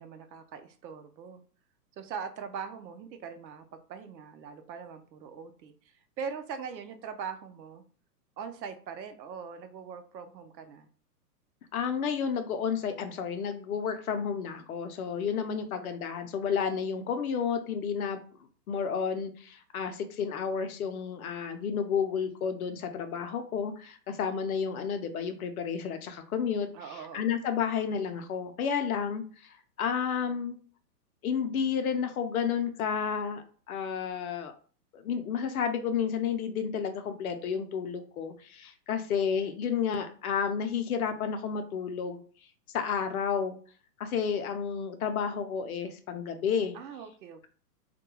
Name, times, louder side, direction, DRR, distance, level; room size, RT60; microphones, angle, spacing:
voice 1, 0.0-1.4 1.9-7.8 8.4-10.9 26.7-27.3 46.7-47.5, right 6 dB, 85° right, 9 dB, 0.7 m, -41 dB
voice 2, 11.7-18.2 18.7-26.7 27.1-30.6 31.2-34.5 34.9-42.2 42.7-43.6 44.0-46.8, left 7 dB, 60° left, 8 dB, 0.5 m, -31 dB
2.2 x 2.2 x 3.0 m, 0.42 s
hypercardioid pair, 150°, 50 cm